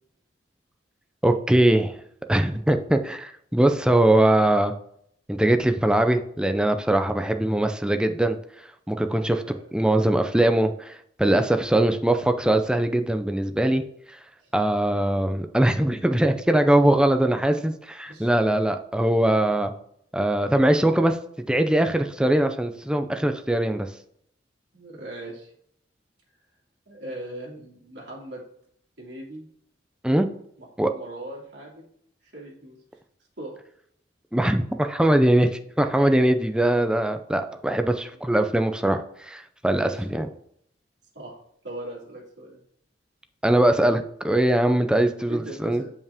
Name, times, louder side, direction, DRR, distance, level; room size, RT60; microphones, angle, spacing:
voice 1, 1.2-2.0 2.3-4.7 5.3-8.4 8.9-9.4 9.7-13.8 14.5-19.7 20.1-21.2 21.5-23.9 30.0-30.3 30.8-30.9 34.3-35.5 35.8-40.3 43.4-45.8, right 1 dB, 5° right, 7 dB, 0.5 m, -21 dB
voice 2, 24.7-25.5 26.9-28.4 29.0-29.5 30.6-31.8 32.2-32.8 33.4-33.6 39.8-40.2 41.1-41.4 41.6-42.6 45.3-45.9, right 1 dB, 75° right, -3 dB, 2.4 m, -39 dB
7.1 x 5.5 x 3.5 m, 0.68 s
head